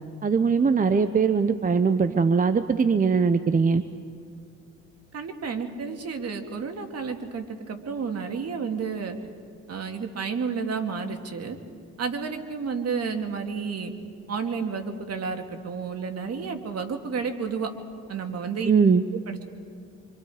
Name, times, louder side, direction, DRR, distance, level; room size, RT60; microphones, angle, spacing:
voice 1, 0.2-3.8 18.7-19.0, right 5 dB, 25° right, 11 dB, 0.7 m, -21 dB
voice 2, 5.1-9.2 9.7-11.6 12.0-13.9 14.3-17.7 18.1-18.7 19.1-19.4, right 5 dB, 55° right, 5 dB, 2.2 m, -31 dB
26.0 x 25.0 x 4.9 m, 2.3 s
cardioid pair, 90°, 30 cm